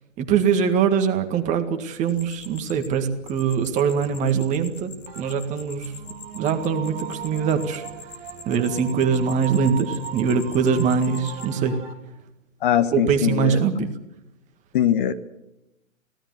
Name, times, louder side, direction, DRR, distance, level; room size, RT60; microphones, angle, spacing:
voice 1, 0.2-5.9 6.3-7.8 8.5-11.8 12.9-13.9, right 6 dB, 20° right, 6 dB, 1.9 m, -22 dB
sound 1, 2.1-11.5, left 4 dB, 20° left, 2.3 m, -43 dB
sound 2, 5.1-11.9, right 8 dB, 40° right, 2.2 m, -38 dB
voice 2, 12.6-13.9 14.7-15.1, left 10 dB, 40° left, 12 dB, 1.3 m, -22 dB
24.5 x 16.5 x 8.0 m, 0.90 s
hypercardioid pair, 140°, 39 cm